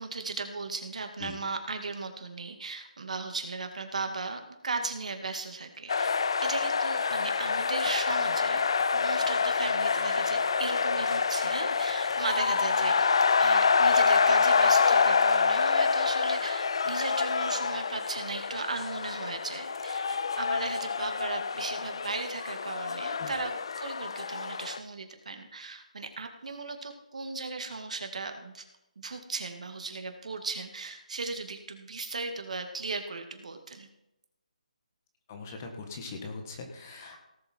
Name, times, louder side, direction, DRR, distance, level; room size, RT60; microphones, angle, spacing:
voice 1, 0.0-6.1 6.4-8.6 8.9-28.6 29.0-33.9, right 3 dB, 60° right, 6 dB, 2.1 m, -37 dB
sound 1, 5.9-24.8, left 5 dB, 40° left, 0.4 m, -27 dB
sound 2, 7.7-13.4, left 2 dB, 5° left, 0.8 m, -55 dB
voice 2, 35.3-37.2, left 4 dB, 20° left, 3 dB, 1.5 m, -41 dB
18.0 x 7.6 x 4.5 m, 0.88 s
hypercardioid pair, 175°, 4 cm